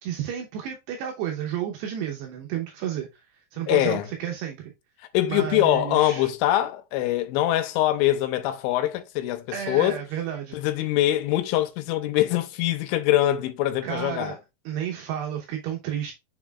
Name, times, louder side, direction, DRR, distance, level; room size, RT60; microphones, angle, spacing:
voice 1, 0.0-3.2 3.5-4.7 5.3-6.3 9.5-10.6 13.8-14.4 14.7-16.1, right 9 dB, 75° right, 2.6 m, -31 dB
voice 2, 3.7-4.1 5.1-10.0 10.5-14.3, left 14 dB, 85° left, 3.1 m, -23 dB
7.0 x 6.1 x 2.3 m
omnidirectional pair, 5.7 m